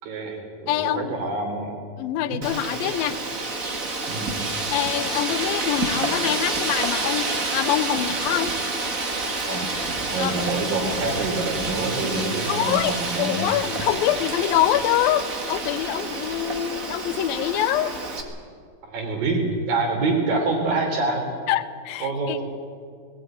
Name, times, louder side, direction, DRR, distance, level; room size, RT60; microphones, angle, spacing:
voice 1, 0.0-1.7 2.2-2.4 4.1-4.3 9.5-9.7 10.1-13.5 18.8-21.2 22.0-22.4, right 3 dB, 70° right, 3 dB, 5.2 m, -26 dB
voice 2, 0.7-1.3 2.0-3.2 4.7-8.5 10.2-10.3 12.5-18.0 21.5-22.4, left 12 dB, 90° left, 13 dB, 2.5 m, -25 dB
Wind, 2.4-18.2, right 3 dB, 30° right, 1.6 m, -28 dB
20.0 x 17.5 x 9.0 m, 2.1 s
omnidirectional pair, 4.1 m